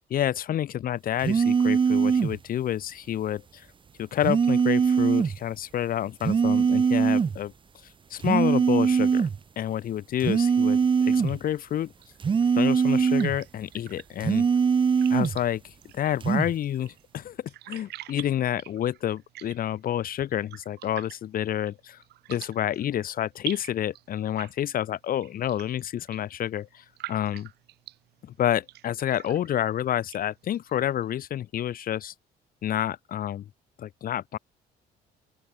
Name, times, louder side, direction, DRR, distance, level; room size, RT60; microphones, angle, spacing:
voice 1, 0.1-3.7 4.0-7.5 8.1-9.3 9.6-11.9 12.5-14.4 15.1-17.4 17.7-22.0 22.3-27.5 28.2-32.1 32.6-33.4 33.8-34.4, left 11 dB, 60° left, 2.9 m, -29 dB
sound 1, 1.2-2.4 4.2-5.4 6.2-7.4 8.2-9.4 10.2-11.4 12.2-13.4 14.2-15.4 16.2-16.5, right 6 dB, 30° right, 1.1 m, -22 dB
sound 2, 11.2-31.2, right 15 dB, 75° right, 4.1 m, -47 dB
open air
cardioid pair, 110°, 17 cm